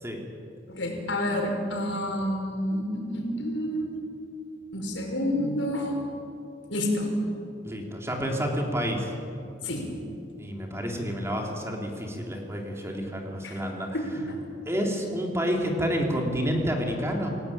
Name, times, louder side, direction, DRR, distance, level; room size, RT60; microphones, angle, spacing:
voice 1, 0.7-3.9 4.7-6.0 6.7-7.1 9.6-9.8 13.4-13.6 13.9-14.4, left 1 dB, 90° left, 2 dB, 5.5 m, -29 dB
voice 2, 7.6-9.1 10.4-14.0 14.7-17.3, equal, 15° right, 1 dB, 3.5 m, -29 dB
28.0 x 17.0 x 8.8 m, 2.6 s
head